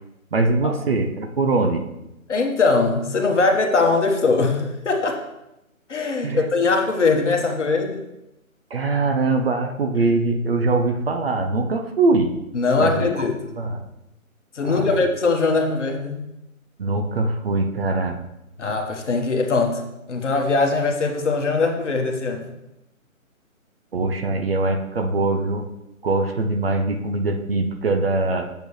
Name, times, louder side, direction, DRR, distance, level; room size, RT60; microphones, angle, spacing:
voice 1, 0.3-1.8 6.2-6.5 8.7-12.3 12.8-13.2 13.6-13.9 14.6-15.0 16.8-18.2 23.9-25.7 26.0-28.5, right 3 dB, 45° right, 5 dB, 0.8 m, -22 dB
voice 2, 2.3-5.2 5.9-8.0 12.5-13.3 14.5-16.3 18.6-19.8 20.1-22.5, left 3 dB, 55° left, 3 dB, 1.4 m, -21 dB
7.9 x 6.9 x 3.3 m, 0.91 s
figure-of-eight pair, 150°, 42 cm